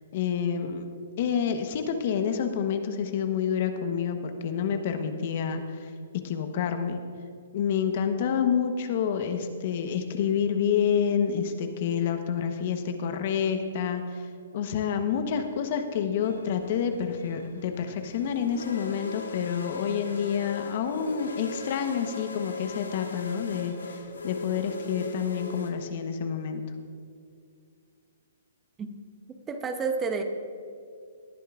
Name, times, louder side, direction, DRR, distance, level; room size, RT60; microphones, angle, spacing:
voice 1, 0.1-0.9 1.2-5.9 6.2-7.0 7.5-14.2 14.5-24.0 24.2-26.6, left 7 dB, 50° left, 7 dB, 1.0 m, -28 dB
sound 1, 16.1-25.7, left 3 dB, 85° left, 1.4 m, -40 dB
voice 2, 29.5-30.2, right 5 dB, 15° right, 6 dB, 0.8 m, -29 dB
19.0 x 10.0 x 2.5 m, 2.3 s
hypercardioid pair, 135°, 0 cm